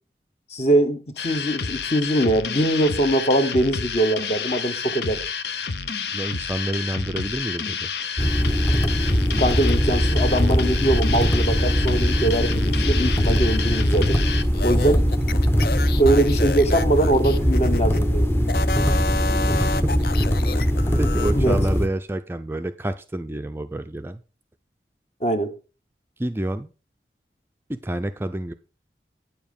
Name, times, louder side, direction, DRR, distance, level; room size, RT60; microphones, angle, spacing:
voice 1, 0.5-5.2 9.4-14.2 14.6-15.1 16.0-18.3 21.3-21.6 25.2-25.5, right 1 dB, 40° left, 1.1 m, -22 dB
sound 1, 1.2-14.4, left 6 dB, 80° left, 0.8 m, -30 dB
voice 2, 6.1-7.9 19.6-20.0 20.6-20.7 21.0-24.2 26.2-26.7 27.7-28.5, right 1 dB, 15° right, 0.4 m, -29 dB
sound 2, 8.2-21.9, equal, 15° left, 0.7 m, -21 dB
sound 3, 14.5-18.0 18.4-21.3, left 4 dB, 55° left, 0.5 m, -30 dB
9.4 x 7.1 x 5.2 m
head